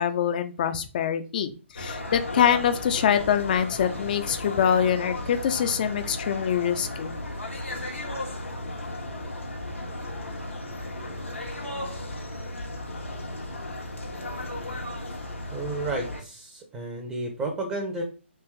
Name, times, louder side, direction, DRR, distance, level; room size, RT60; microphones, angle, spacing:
voice 1, 0.0-7.1, left 8 dB, 45° left, 8 dB, 0.5 m, -24 dB
sound 1, 1.8-16.2, left 1 dB, 85° left, 1.1 m, -35 dB
voice 2, 15.5-18.0, right 2 dB, 15° right, 1 dB, 0.6 m, -32 dB
3.3 x 3.0 x 3.2 m, 0.34 s
figure-of-eight pair, 135°, 7 cm